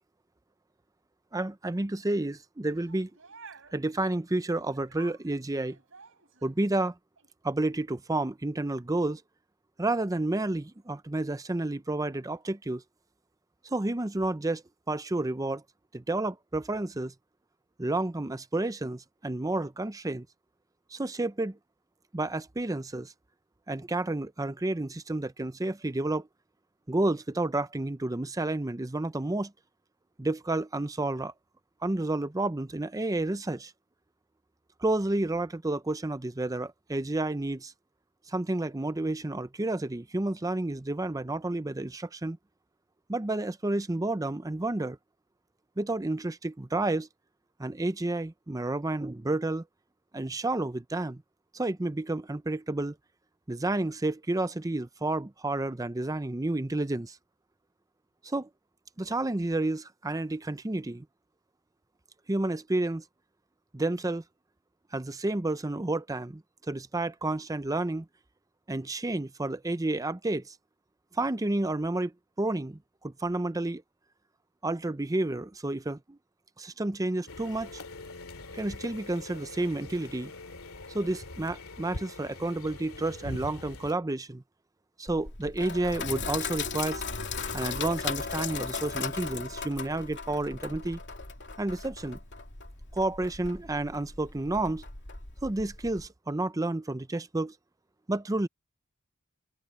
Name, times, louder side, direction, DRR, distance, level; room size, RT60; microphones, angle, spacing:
voice 1, 1.3-3.1 3.7-5.8 6.4-6.9 7.4-9.2 9.8-12.8 13.6-15.6 15.9-17.1 17.8-20.3 20.9-21.6 22.1-23.1 23.7-26.3 26.9-29.5 30.2-31.3 31.8-33.7 34.8-37.7 38.3-42.4 43.1-45.0 45.8-47.1 47.6-49.6 50.1-51.2 51.5-53.0 53.5-57.2 58.2-58.5 59.0-61.1 62.3-63.0 63.7-64.2 64.9-68.1 68.7-70.5 71.1-73.8 74.6-76.2 76.6-77.8 78.5-80.3 80.9-84.4 85.0-87.0 87.5-91.0 91.6-92.2 92.9-94.9 95.4-97.5 98.1-98.5, right 2 dB, 15° right, 0.6 m, -30 dB
sound 1, 2.7-3.8 4.7-6.6 7.2-7.3, right 5 dB, 65° right, 7.1 m, -52 dB
sound 2, 77.3-83.9, left 2 dB, 85° left, 2.4 m, -43 dB
Sink (filling or washing), 85.1-96.1, left 5 dB, 55° left, 2.9 m, -37 dB
head